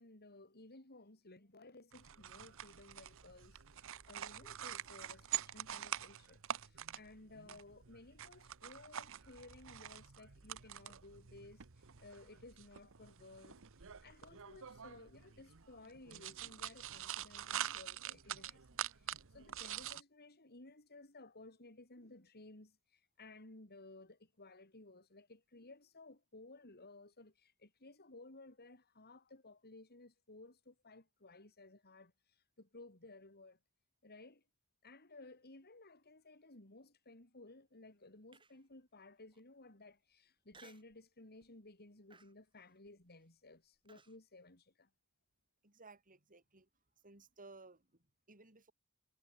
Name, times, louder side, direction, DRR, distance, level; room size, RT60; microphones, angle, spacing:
voice 1, 0.0-33.6 34.0-34.4 34.8-44.9, left 2 dB, 45° left, 4.2 m, -58 dB
sound 1, 1.9-20.0, right 10 dB, 65° right, 1.1 m, -46 dB
Human voice, 38.3-38.8 39.3-39.4 40.5-41.0 41.4-41.7 42.1-44.2, right 4 dB, 20° right, 3.2 m, -63 dB
voice 2, 45.6-46.7 47.0-48.7, right 3 dB, 40° right, 6.0 m, -59 dB
head